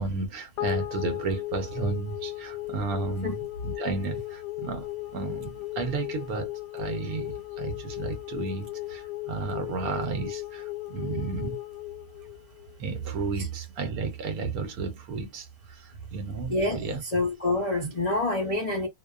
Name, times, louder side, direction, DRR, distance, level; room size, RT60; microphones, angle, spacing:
voice 1, 0.0-11.6 12.8-17.0 17.8-17.9, right 4 dB, 70° right, 1.0 m, -33 dB
sound 1, 0.6-13.1, left 16 dB, 85° left, 1.2 m, -36 dB
voice 2, 17.1-18.9, left 2 dB, 45° left, 0.5 m, -26 dB
2.7 x 2.1 x 2.2 m
omnidirectional pair, 1.7 m